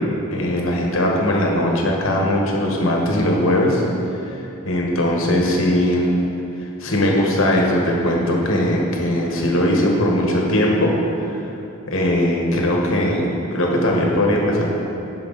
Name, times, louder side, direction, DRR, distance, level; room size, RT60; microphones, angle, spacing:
voice 1, 0.3-3.8 4.3-6.2 6.8-10.9 11.3-11.4 11.9-14.7, left 1 dB, 65° left, -1 dB, 1.2 m, -19 dB
11.0 x 4.8 x 3.9 m, 2.8 s
head